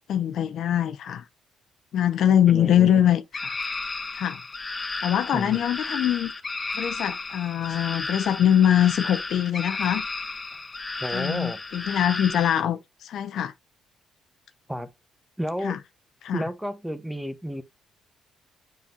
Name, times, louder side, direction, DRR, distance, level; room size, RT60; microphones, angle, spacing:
voice 1, 0.1-1.2 1.9-3.6 4.1-4.4 5.0-6.3 6.7-10.0 11.1-13.5 15.6-15.8 16.2-16.4, left 10 dB, 70° left, 0.7 m, -23 dB
voice 2, 2.5-3.0 5.3-5.6 11.0-11.6 14.7-14.9 15.4-15.8 16.3-17.6, equal, 5° right, 1.1 m, -31 dB
sound 1, 3.3-12.6, left 3 dB, 30° left, 1.4 m, -33 dB
7.3 x 5.4 x 2.8 m
supercardioid pair, 75°, 0 cm